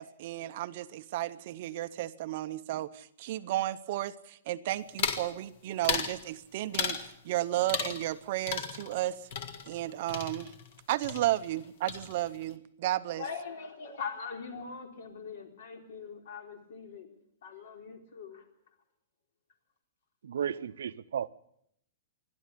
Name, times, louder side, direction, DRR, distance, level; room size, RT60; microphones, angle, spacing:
voice 1, 0.0-9.2 9.7-10.5 10.9-13.2, right 14 dB, 35° right, 12 dB, 0.7 m, -33 dB
sound 1, 5.0-5.3 5.8-6.2 6.7-7.1 7.7-8.2 8.5-10.8 11.0-11.6 11.9-12.4, left 6 dB, 40° left, 1.7 m, -35 dB
voice 2, 13.2-17.1 17.4-18.4, left 5 dB, 60° left, 4 dB, 4.1 m, -41 dB
voice 3, 20.2-21.3, right 8 dB, 80° right, 12 dB, 0.9 m, -34 dB
28.0 x 11.5 x 8.4 m, 0.74 s
hypercardioid pair, 175°, 0 cm